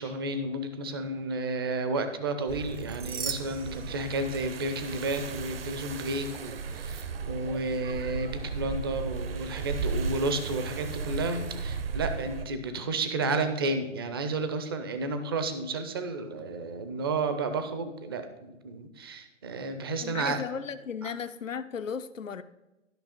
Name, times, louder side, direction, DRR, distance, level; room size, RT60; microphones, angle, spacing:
voice 1, 0.0-20.4, right 2 dB, 20° right, 0.5 m, -32 dB
sound 1, 2.5-12.5, right 5 dB, 50° right, 0.8 m, -35 dB
sound 2, 2.6-4.6 5.0-5.2 6.8-7.0, right 6 dB, 65° right, 1.1 m, -40 dB
voice 2, 20.0-22.4, left 6 dB, 85° left, 0.6 m, -35 dB
12.0 x 5.6 x 4.3 m
figure-of-eight pair, 130°, 38 cm